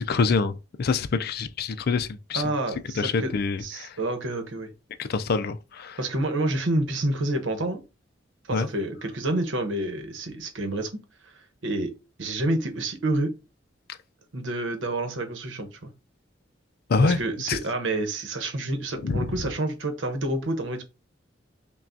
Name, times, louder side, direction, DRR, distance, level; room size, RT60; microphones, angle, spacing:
voice 1, 0.0-2.4 3.0-3.9 5.0-6.0 8.5-8.7 16.9-17.2 17.5-17.6 19.0-19.3, left 4 dB, 55° left, 0.4 m, -25 dB
voice 2, 2.3-3.3 3.6-4.7 6.0-7.8 8.5-10.9 11.2-11.3 11.6-11.9 12.2-13.3 14.3-15.9 17.0-20.8, right 1 dB, 85° right, 1.0 m, -28 dB
5.7 x 2.3 x 2.6 m
head